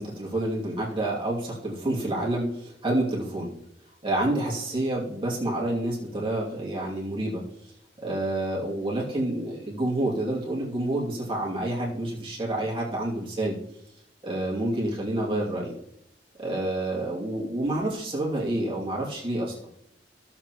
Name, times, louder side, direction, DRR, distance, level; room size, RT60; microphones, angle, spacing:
voice 1, 0.0-3.5 4.0-7.4 8.0-13.6 14.2-15.8 16.4-19.6, right 1 dB, 30° right, -5 dB, 2.6 m, -28 dB
15.0 x 7.3 x 3.0 m, 0.76 s
head